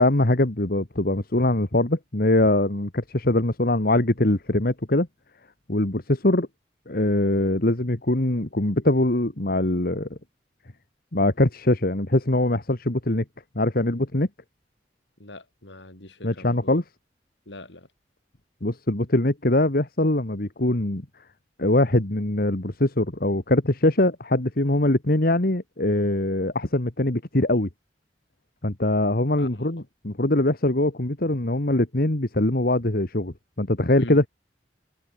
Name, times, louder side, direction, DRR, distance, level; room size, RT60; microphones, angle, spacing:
voice 1, 0.0-5.1 5.7-6.5 6.9-10.2 11.1-13.2 13.6-14.3 16.2-16.8 18.6-21.1 21.6-27.7 28.6-34.3, left 1 dB, 55° left, 2.1 m, -22 dB
voice 2, 15.2-16.8 17.5-17.9 29.4-29.8 33.9-34.2, left 1 dB, 85° left, 6.0 m, -43 dB
head